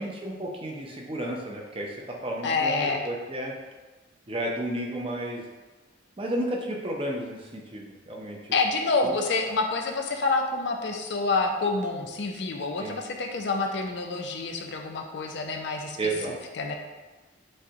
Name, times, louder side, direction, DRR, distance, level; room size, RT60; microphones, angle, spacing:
voice 1, 0.0-3.5 4.3-5.4 6.2-8.4 9.0-9.1 12.8-13.0 16.0-16.4, right 1 dB, 30° right, -1 dB, 0.5 m, -32 dB
voice 2, 2.4-3.0 8.5-16.0 16.5-16.7, left 3 dB, 65° left, 3 dB, 0.5 m, -27 dB
6.3 x 2.2 x 2.8 m, 1.2 s
head